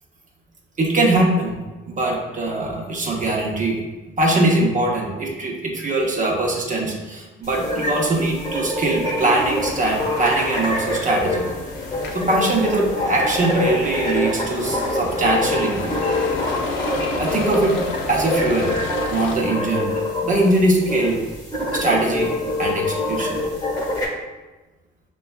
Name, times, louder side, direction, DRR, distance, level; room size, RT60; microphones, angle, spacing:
voice 1, 0.8-1.5 1.9-3.8 4.2-11.4 12.1-16.0 17.2-17.8 18.1-18.7 19.0-19.9 20.2-21.2 21.7-22.3 22.6-23.4, right 2 dB, 40° right, -1 dB, 0.8 m, -21 dB
sound 1, 7.4-24.1, left 1 dB, 15° left, 1.1 m, -26 dB
sound 2, 9.3-19.4, left 3 dB, 70° left, 0.6 m, -31 dB
5.7 x 2.3 x 2.3 m, 1.2 s
cardioid pair, 90°, 20 cm